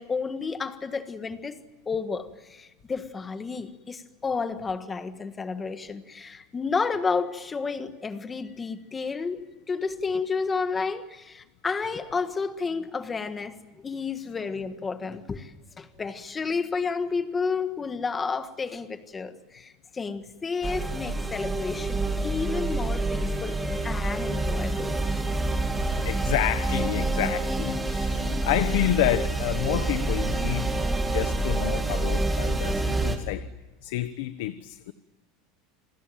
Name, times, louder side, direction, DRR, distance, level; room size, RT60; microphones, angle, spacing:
voice 1, 0.0-1.6 1.8-15.5 15.8-24.9, left 4 dB, 15° left, 1.6 m, -31 dB
sound 1, 20.6-33.2, right 2 dB, 10° right, 2.5 m, -27 dB
voice 2, 25.8-30.7 31.1-33.5 33.8-34.9, left 14 dB, 70° left, 1.1 m, -29 dB
28.5 x 21.0 x 9.2 m
supercardioid pair, 165°, 0 cm